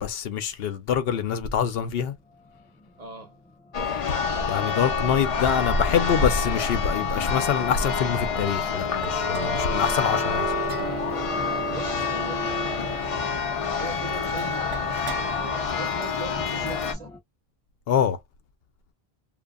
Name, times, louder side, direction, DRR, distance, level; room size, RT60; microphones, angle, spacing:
voice 1, 0.0-2.1 4.5-10.5 17.9-18.2, left 8 dB, 75° left, 0.8 m, -25 dB
sound 1, 2.0-17.2, left 1 dB, 5° left, 0.6 m, -42 dB
voice 2, 3.0-3.4 11.6-13.2 13.8-17.1, right 5 dB, 45° right, 0.7 m, -40 dB
Church bell, 3.7-16.9, left 5 dB, 45° left, 0.4 m, -27 dB
sound 2, 4.8-8.3 8.7-16.6, right 6 dB, 80° right, 0.8 m, -38 dB
2.7 x 2.2 x 2.2 m
omnidirectional pair, 1.1 m